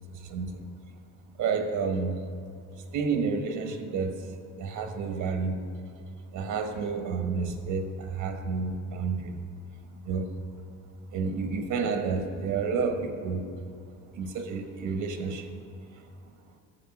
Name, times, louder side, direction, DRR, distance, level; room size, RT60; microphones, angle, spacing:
voice 1, 0.1-0.7 1.4-2.2 2.9-4.1 4.6-5.6 6.3-9.4 10.0-10.3 11.1-13.4 14.1-15.5, right 5 dB, 85° right, 6 dB, 1.2 m, -30 dB
11.0 x 7.1 x 6.0 m, 2.3 s
cardioid pair, 90°, 30 cm